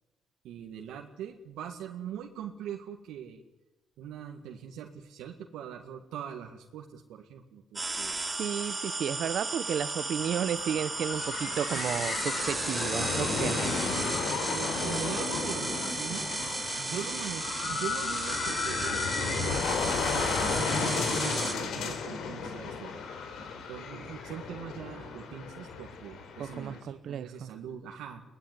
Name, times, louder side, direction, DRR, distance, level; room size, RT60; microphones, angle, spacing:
voice 1, 0.4-3.4 4.0-8.3 11.6-12.1 13.3-13.4 13.7-14.0 14.5-16.3 16.8-23.0 23.7-28.2, right 9 dB, 90° right, 2 dB, 2.0 m, -42 dB
sound 1, 7.8-21.5, right 3 dB, 20° right, 3.1 m, -34 dB
voice 2, 8.4-12.1 12.4-13.7 26.6-27.5, right 9 dB, 65° right, 15 dB, 0.9 m, -33 dB
sound 2, 10.2-26.8, left 5 dB, 80° left, 4.0 m, -34 dB
23.0 x 18.5 x 9.7 m, 1.0 s
cardioid pair, 90°, 0 cm